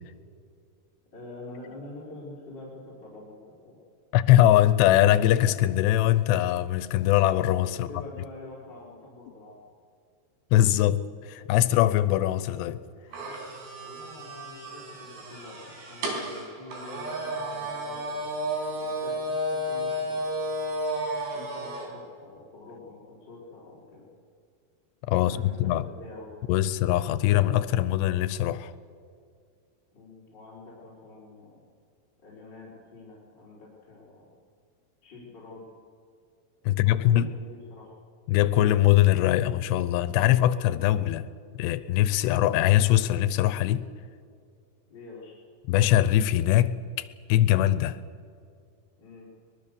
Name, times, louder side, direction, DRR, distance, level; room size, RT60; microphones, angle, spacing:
voice 1, 1.1-3.4 3.6-3.8 7.9-9.6 13.8-20.2 21.3-24.1 25.1-26.5 29.9-31.6 32.2-34.3 35.0-35.7 36.7-37.9 44.9-45.3 49.0-49.3, left 2 dB, 25° left, 4.7 m, -46 dB
voice 2, 4.1-7.9 10.5-12.8 25.1-25.9 26.5-28.7 36.7-37.3 38.3-41.3 41.6-43.8 45.7-48.0, left 13 dB, 90° left, 2.9 m, -22 dB
sound 1, 13.1-21.9, right 1 dB, 70° right, 6.1 m, -32 dB
23.0 x 21.0 x 6.9 m
omnidirectional pair, 4.9 m